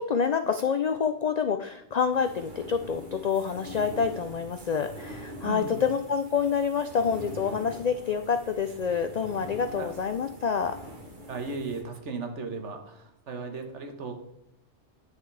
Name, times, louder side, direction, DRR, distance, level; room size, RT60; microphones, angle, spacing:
voice 1, 0.0-10.8, left 6 dB, 70° left, 8 dB, 0.4 m, -27 dB
sound 1, 2.1-11.8, right 1 dB, 45° right, 1.4 m, -44 dB
voice 2, 5.4-5.8 9.8-9.9 11.3-14.1, right 4 dB, 75° right, 5 dB, 1.5 m, -36 dB
9.9 x 6.4 x 3.3 m, 0.81 s
omnidirectional pair, 1.2 m